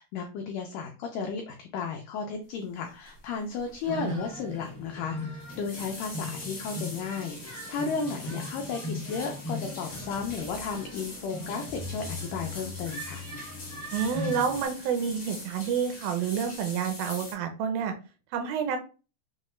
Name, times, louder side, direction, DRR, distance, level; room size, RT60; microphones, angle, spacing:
voice 1, 0.0-13.2, left 5 dB, 85° left, 3 dB, 1.8 m, -34 dB
sound 1, 3.1-3.3 3.5-3.9 4.1-4.2 5.2-17.3, left 2 dB, 60° left, 0.8 m, -43 dB
sound 2, 3.8-14.6, left 2 dB, 15° left, 0.5 m, -39 dB
voice 2, 3.9-4.2 13.9-17.9 18.3-18.8, right 7 dB, 80° right, 5 dB, 2.2 m, -29 dB
6.3 x 2.1 x 3.1 m, 0.34 s
omnidirectional pair, 4.4 m